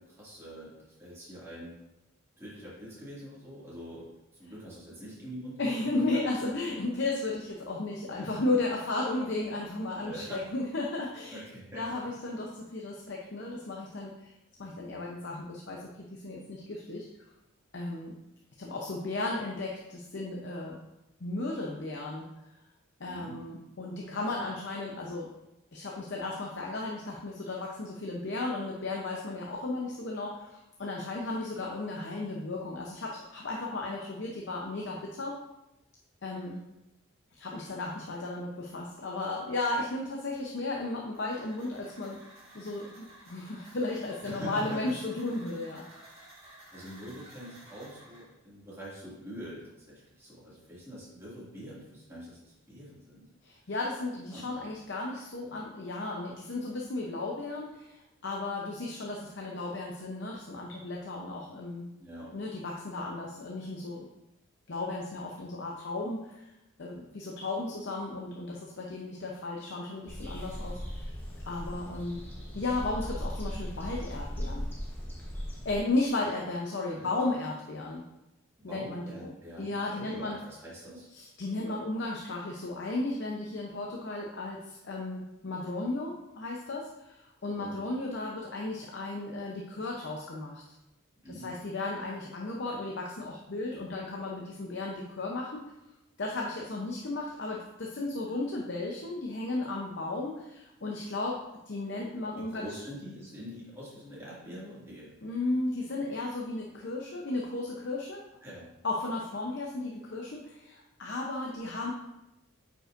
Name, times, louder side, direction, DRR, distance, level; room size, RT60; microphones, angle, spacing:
voice 1, 0.0-1.8 2.4-6.2 8.2-8.4 10.0-10.5 11.3-12.2 14.6-14.9 23.0-23.5 44.2-44.8 46.7-53.3 54.3-54.6 62.0-62.3 71.7-71.8 76.2-76.3 76.9-77.1 78.7-81.1 87.4-87.8 91.2-91.6 102.4-105.1 108.4-108.7, equal, 10° right, -8 dB, 2.2 m, -45 dB
voice 2, 5.6-11.4 11.8-14.3 14.6-17.1 17.7-18.1 18.6-20.8 21.2-22.3 23.0-25.3 25.7-35.4 36.2-36.6 37.4-42.2 42.5-45.8 53.4-61.9 62.3-64.1 64.7-66.5 66.8-71.1 71.4-72.3 72.5-74.7 75.6-78.0 78.6-79.3 79.6-80.4 81.1-90.6 91.3-95.6 96.2-101.4 101.7-102.8 105.2-108.2 108.8-111.9, left 2 dB, 55° left, -1 dB, 0.7 m, -34 dB
sound 1, 41.1-48.2, right 1 dB, 30° right, 2.5 m, -54 dB
sound 2, 70.1-75.8, equal, 10° left, 1.0 m, -38 dB
8.6 x 5.4 x 2.6 m, 0.92 s
head